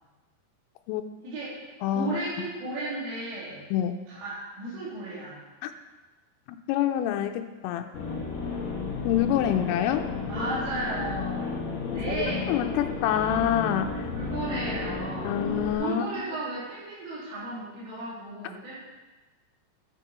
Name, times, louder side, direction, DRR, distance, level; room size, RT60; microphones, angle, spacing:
voice 1, 1.2-1.6 1.9-3.6 4.1-5.4 10.3-11.6 11.9-12.6 14.1-15.4 15.8-18.8, right 2 dB, 75° right, -8 dB, 6.3 m, -34 dB
voice 2, 1.8-2.5 3.7-3.9 5.6-5.7 6.5-7.9 9.0-10.1 11.8-14.1 15.2-16.1, left 10 dB, 90° left, 6 dB, 3.2 m, -27 dB
sound 1, 7.9-15.7, left 4 dB, 65° left, 2.3 m, -33 dB
12.0 x 8.1 x 4.5 m, 1.2 s
omnidirectional pair, 5.8 m